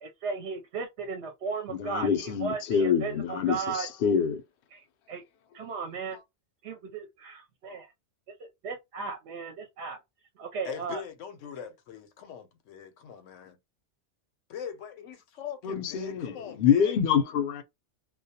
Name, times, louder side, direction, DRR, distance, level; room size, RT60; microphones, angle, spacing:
voice 1, 0.0-3.9 4.7-5.2 5.5-6.2 6.6-7.9 8.4-10.0 10.4-11.0, right 5 dB, 70° right, 0.8 m, -36 dB
voice 2, 1.7-4.4 15.6-17.6, left 7 dB, 60° left, 0.6 m, -26 dB
voice 3, 10.6-13.6 14.5-17.0, left 8 dB, 90° left, 0.9 m, -41 dB
2.3 x 2.1 x 2.7 m
omnidirectional pair, 1.2 m